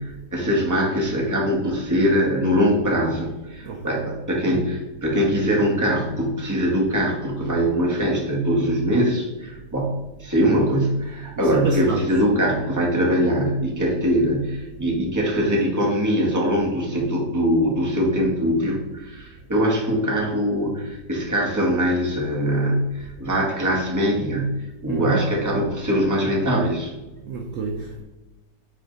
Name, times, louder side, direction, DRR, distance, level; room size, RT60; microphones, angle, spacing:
voice 1, 0.0-26.9, equal, 10° right, -3 dB, 1.4 m, -22 dB
voice 2, 11.4-12.0 24.9-25.2 27.3-28.0, right 4 dB, 60° right, 2 dB, 0.9 m, -28 dB
8.6 x 3.5 x 3.9 m, 1.1 s
omnidirectional pair, 1.9 m